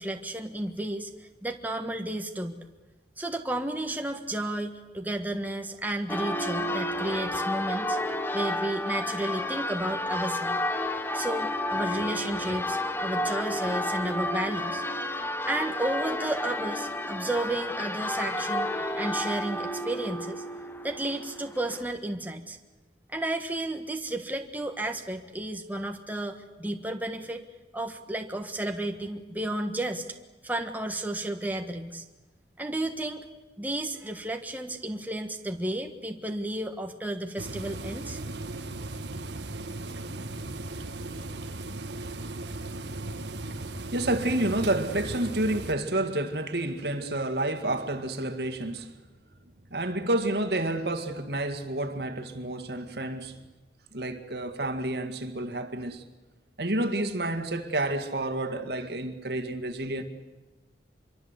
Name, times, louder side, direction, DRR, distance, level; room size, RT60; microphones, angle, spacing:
voice 1, 0.0-2.6 3.2-10.6 11.1-14.8 15.4-20.4 20.8-22.6 23.1-27.4 27.7-30.0 30.4-32.0 32.6-33.3 33.6-38.2, right 1 dB, 10° right, 1.4 m, -32 dB
Church bell, 6.1-21.8, left 1 dB, 15° left, 1.3 m, -31 dB
sound 1, 37.4-45.7, right 2 dB, 85° right, 1.4 m, -37 dB
voice 2, 41.7-42.3 42.8-42.9 43.8-49.0 49.7-53.4 53.9-56.0 56.6-60.0, right 1 dB, 65° right, 2.0 m, -30 dB
25.5 x 23.0 x 8.3 m
head